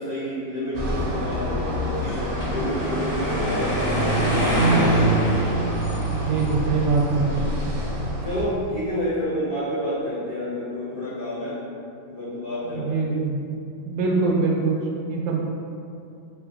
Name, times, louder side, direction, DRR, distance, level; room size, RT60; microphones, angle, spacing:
voice 1, 0.0-5.1 8.2-11.6 12.1-12.9, left 1 dB, 85° left, -12 dB, 0.5 m, -29 dB
sound 1, 0.7-8.4, left 1 dB, 60° right, 0.9 m, -29 dB
sound 2, 1.9-8.0, right 1 dB, 60° left, 0.9 m, -24 dB
voice 2, 6.1-7.6 12.6-13.6 13.8-14.8 15.0-15.4, right 4 dB, 85° right, -2 dB, 1.3 m, -24 dB
3.3 x 3.3 x 2.5 m, 2.5 s
omnidirectional pair, 2.1 m